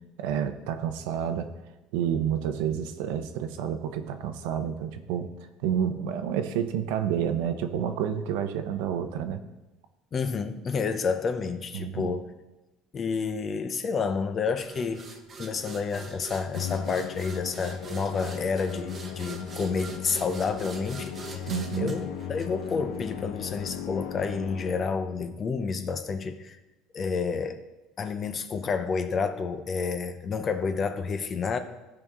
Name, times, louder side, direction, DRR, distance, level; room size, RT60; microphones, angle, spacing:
voice 1, 0.2-1.5 1.9-5.3 5.6-9.4 11.7-12.1 21.5-21.9, right 9 dB, 90° right, 8 dB, 0.9 m, -29 dB
voice 2, 10.1-12.3 12.9-15.1 15.4-21.4 21.8-26.6 26.9-27.6 28.0-31.6, left 5 dB, 25° left, 9 dB, 0.6 m, -30 dB
sound 1, 14.6-23.1, right 5 dB, 25° right, 0.9 m, -43 dB
Musical instrument, 16.5-25.1, left 9 dB, 70° left, 0.8 m, -37 dB
15.5 x 5.3 x 3.6 m, 1.1 s
cardioid pair, 175°, 0 cm